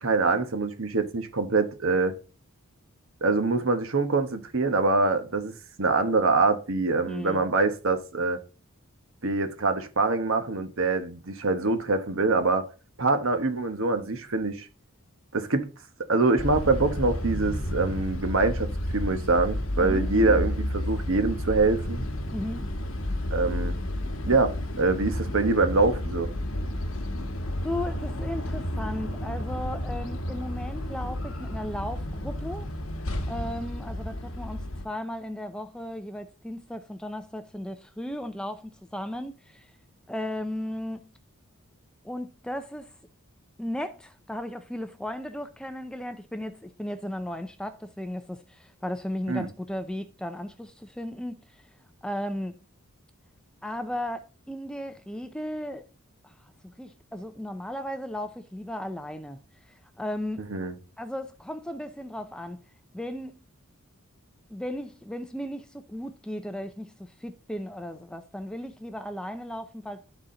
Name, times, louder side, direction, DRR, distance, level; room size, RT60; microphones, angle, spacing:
voice 1, 0.0-2.1 3.2-8.4 9.2-12.6 13.0-14.6 15.3-15.7 16.1-22.1 23.3-23.8 24.2-26.3 49.3-49.5 60.5-60.7, right 3 dB, 60° right, 1.1 m, -24 dB
voice 2, 7.0-7.4 19.8-20.4 22.3-22.7 27.6-32.7 33.3-39.7 40.1-41.1 42.0-42.9 43.6-51.6 52.0-52.6 53.6-55.8 56.2-56.3 56.6-60.5 61.0-62.6 62.9-63.4 64.5-70.0, left 1 dB, 5° left, 0.4 m, -35 dB
sound 1, 16.4-34.9, left 1 dB, 70° left, 1.2 m, -31 dB
12.0 x 4.2 x 3.8 m
head